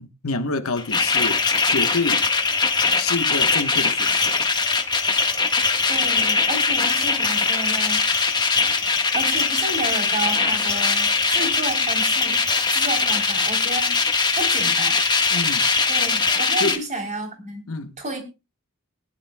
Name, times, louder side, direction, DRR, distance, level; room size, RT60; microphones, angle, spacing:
voice 1, 0.0-2.3 2.9-4.5 15.3-15.7 16.6-16.8 17.7-18.0, left 3 dB, 70° left, 1.2 m, -28 dB
sound 1, 0.8-16.8, left 4 dB, 20° left, 1.5 m, -21 dB
voice 2, 5.9-8.1 9.1-12.4 12.7-13.9 14.3-15.0 15.9-18.2, right 2 dB, 35° right, 3.7 m, -31 dB
21.0 x 11.0 x 2.3 m
head